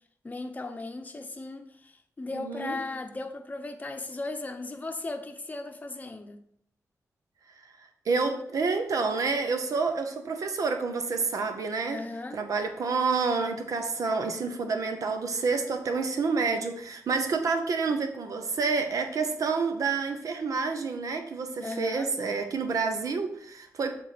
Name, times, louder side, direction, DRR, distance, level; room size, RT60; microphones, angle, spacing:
voice 1, 0.2-6.4 11.9-12.4 21.6-22.1, left 2 dB, 30° left, 0.8 m, -37 dB
voice 2, 2.3-2.8 8.0-12.0 12.3-24.0, right 4 dB, 75° right, 1.0 m, -28 dB
7.6 x 3.9 x 5.0 m
wide cardioid pair, 105°, 6 cm